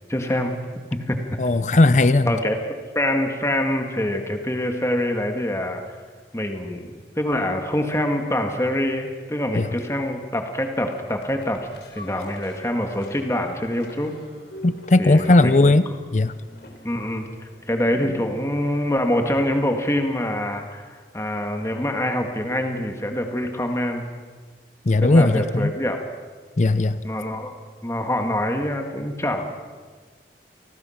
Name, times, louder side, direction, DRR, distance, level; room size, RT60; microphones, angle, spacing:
voice 1, 0.1-0.6 0.9-1.2 2.3-2.6 3.0-5.8 6.3-11.6 11.9-14.1 15.0-15.8 16.8-24.1 25.0-26.0 27.0-27.5 27.8-29.5, left 1 dB, 15° left, 4 dB, 1.9 m, -25 dB
voice 2, 1.4-2.3 9.5-9.7 14.6-16.3 24.9-25.7 26.6-27.0, left 2 dB, 40° left, 13 dB, 0.6 m, -17 dB
sound 1, 11.2-19.8 20.2-20.3, left 1 dB, 70° left, 3.7 m, -44 dB
29.0 x 19.5 x 5.9 m, 1.5 s
head